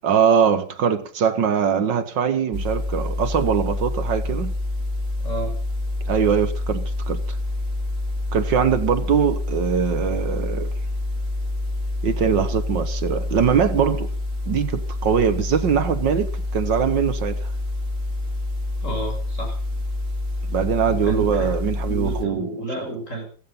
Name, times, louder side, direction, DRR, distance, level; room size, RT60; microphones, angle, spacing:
voice 1, 0.0-4.5 6.1-7.4 8.3-10.7 12.0-14.1 14.5-17.5 20.5-22.6, right 7 dB, 70° right, 1.9 m, -22 dB
sound 1, 2.5-22.2, left 2 dB, 40° right, 2.2 m, -27 dB
voice 2, 5.2-5.6 18.8-19.6 20.9-23.3, right 2 dB, 40° left, 7.1 m, -31 dB
16.0 x 15.0 x 5.4 m
omnidirectional pair, 2.0 m